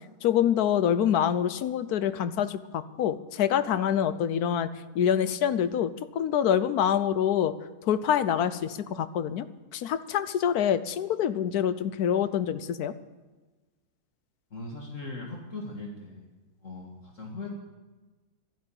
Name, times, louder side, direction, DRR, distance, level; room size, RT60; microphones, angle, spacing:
voice 1, 0.2-4.7 4.9-9.5 9.7-12.9, left 9 dB, 75° left, 13 dB, 1.3 m, -26 dB
voice 2, 14.5-16.3 16.6-17.5, left 2 dB, 55° left, -1 dB, 2.2 m, -39 dB
12.5 x 11.0 x 8.8 m, 1.2 s
omnidirectional pair, 1.6 m